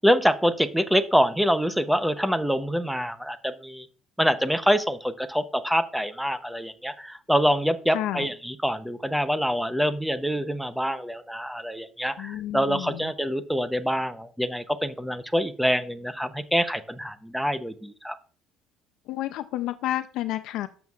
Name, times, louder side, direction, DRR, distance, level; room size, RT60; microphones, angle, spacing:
voice 1, 0.0-3.9 4.2-18.2, equal, ahead, 11 dB, 0.6 m, -25 dB
voice 2, 7.9-8.3 12.2-13.1 19.1-20.7, left 14 dB, 70° left, 11 dB, 0.4 m, -30 dB
12.0 x 7.1 x 2.4 m, 0.42 s
cardioid pair, 150°, 0 cm